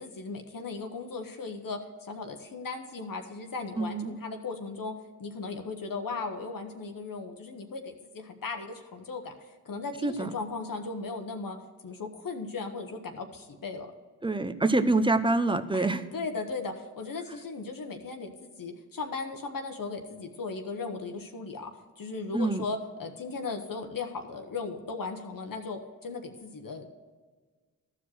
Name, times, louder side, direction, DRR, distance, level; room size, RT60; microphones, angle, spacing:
voice 1, 0.0-4.9 5.2-9.3 9.6-11.6 11.8-13.9 15.7-21.7 22.0-26.9, left 4 dB, 60° left, 4 dB, 1.0 m, -37 dB
voice 2, 3.8-4.2 10.0-10.3 14.2-16.0 22.3-22.6, right 2 dB, 15° right, 11 dB, 0.7 m, -26 dB
13.0 x 4.9 x 6.3 m, 1.4 s
cardioid pair, 40°, 37 cm